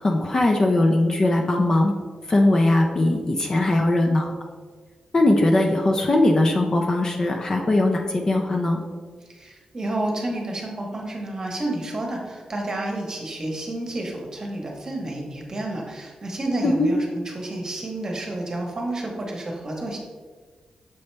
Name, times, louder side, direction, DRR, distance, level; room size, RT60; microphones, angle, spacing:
voice 1, 0.0-1.9 2.3-4.4 5.1-8.8 16.6-16.9, left 2 dB, 30° left, 2 dB, 0.4 m, -20 dB
voice 2, 9.3-20.0, right 1 dB, 30° right, 0 dB, 1.0 m, -30 dB
6.8 x 4.2 x 3.3 m, 1.5 s
wide cardioid pair, 170°, 2 cm